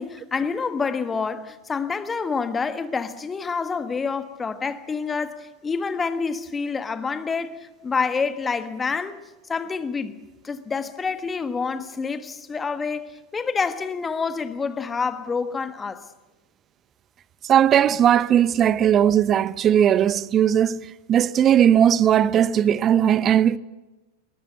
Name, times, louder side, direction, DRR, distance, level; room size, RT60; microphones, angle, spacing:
voice 1, 0.0-9.2 9.5-10.2 10.4-16.1, left 5 dB, 15° left, 1.5 m, -27 dB
voice 2, 17.5-23.6, right 9 dB, 30° right, 0.7 m, -18 dB
21.5 x 20.0 x 8.0 m
figure-of-eight pair, 90°, 0 cm